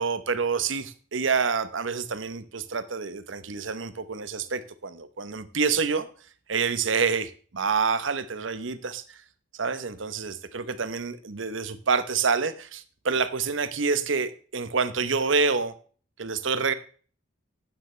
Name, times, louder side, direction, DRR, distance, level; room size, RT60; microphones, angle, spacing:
voice 1, 0.0-6.1 6.5-9.2 9.5-15.7 16.2-16.7, right 5 dB, 80° right, 0.9 m, -27 dB
12.0 x 9.2 x 3.3 m
head